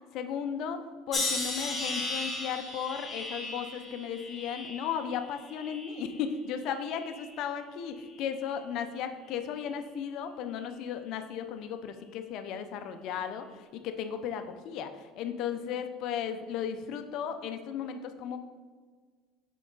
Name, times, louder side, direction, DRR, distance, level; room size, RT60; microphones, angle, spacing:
voice 1, 0.1-0.8 1.1-13.4 13.7-14.9 15.2-18.4, left 8 dB, 45° left, 8 dB, 0.5 m, -35 dB
sound 1, 1.1-6.3 6.7-7.4 8.1-8.4, left 2 dB, 10° left, 1.1 m, -36 dB
6.1 x 4.6 x 3.9 m, 1.5 s
cardioid pair, 175°, 0 cm